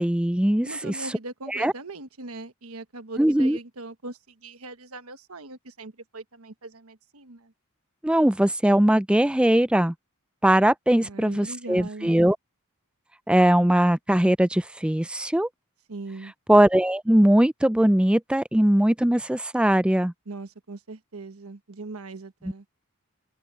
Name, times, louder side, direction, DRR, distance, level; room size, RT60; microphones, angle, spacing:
voice 1, 0.0-0.9 1.5-1.7 3.2-3.6 8.0-9.9 10.4-12.4 13.3-15.5 16.5-20.1, right 1 dB, 5° right, 0.4 m, -20 dB
voice 2, 0.6-7.5 11.0-12.2 15.9-16.3 20.3-22.6, right 2 dB, 85° right, 1.3 m, -40 dB
open air
head